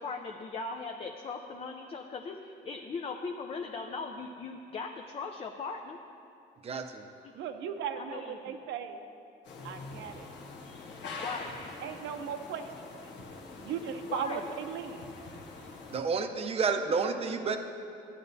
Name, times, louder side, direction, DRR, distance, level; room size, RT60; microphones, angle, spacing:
voice 1, 0.0-6.0 7.2-7.3 8.0-8.4 11.2-11.5 14.1-14.6, left 4 dB, 30° left, 4 dB, 0.4 m, -39 dB
voice 2, 6.6-7.1 15.9-17.6, right 5 dB, 30° right, 5 dB, 0.6 m, -30 dB
voice 3, 7.3-9.0 9.6-10.3 11.8-12.7 13.0-13.1 13.6-15.1, right 7 dB, 80° right, 7 dB, 0.7 m, -37 dB
sound 1, 9.4-16.0, left 3 dB, 75° left, 1.1 m, -44 dB
13.5 x 9.1 x 2.7 m, 2.7 s
cardioid pair, 125°, 19 cm